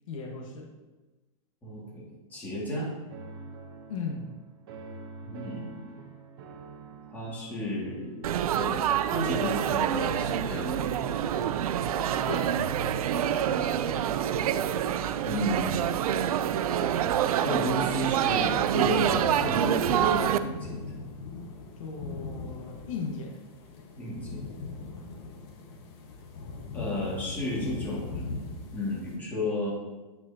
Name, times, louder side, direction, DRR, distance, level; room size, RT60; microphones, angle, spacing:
voice 1, 0.1-0.7 3.9-4.2 12.3-12.5 21.8-23.4, left 4 dB, 65° left, 0 dB, 1.5 m, -36 dB
voice 2, 2.3-2.9 5.2-5.9 7.1-8.2 8.6-10.8 13.5-13.7 15.2-15.9 17.4-20.8 24.0-24.5 24.8-24.9 26.7-28.4 28.7-29.7, left 1 dB, 10° left, -7 dB, 2.2 m, -33 dB
sound 1, 3.1-17.8, right 4 dB, 40° right, 1.0 m, -43 dB
Laughter / Chatter / Crowd, 8.2-20.4, right 10 dB, 85° right, 0.5 m, -27 dB
sound 2, 18.4-29.2, left 3 dB, 45° left, 1.4 m, -40 dB
9.2 x 7.9 x 2.9 m, 1.2 s
supercardioid pair, 170°, 18 cm